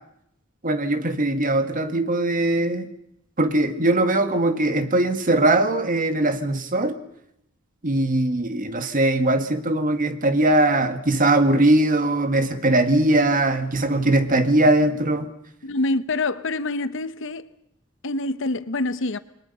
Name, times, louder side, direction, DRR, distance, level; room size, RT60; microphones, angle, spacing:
voice 1, 0.6-2.9 3.4-7.0 7.8-15.3, right 2 dB, 40° right, 1.8 m, -20 dB
voice 2, 15.6-17.5 18.0-19.2, left 2 dB, 65° left, 1.0 m, -26 dB
28.5 x 22.0 x 5.6 m
head